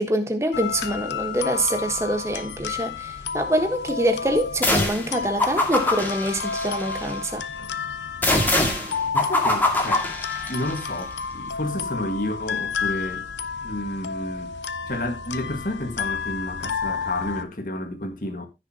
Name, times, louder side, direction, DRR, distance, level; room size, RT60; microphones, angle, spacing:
voice 1, 0.0-7.4, right 1 dB, 15° right, 1.4 m, -25 dB
sound 1, 0.5-17.4, left 6 dB, 85° left, 0.8 m, -31 dB
sound 2, 4.6-5.1 5.4-7.1 8.2-10.8, left 2 dB, 10° left, 2.1 m, -23 dB
voice 2, 9.1-10.1 10.5-13.3 13.6-14.5 14.9-18.5, left 1 dB, 50° left, 1.9 m, -31 dB
15.0 x 6.7 x 2.9 m
head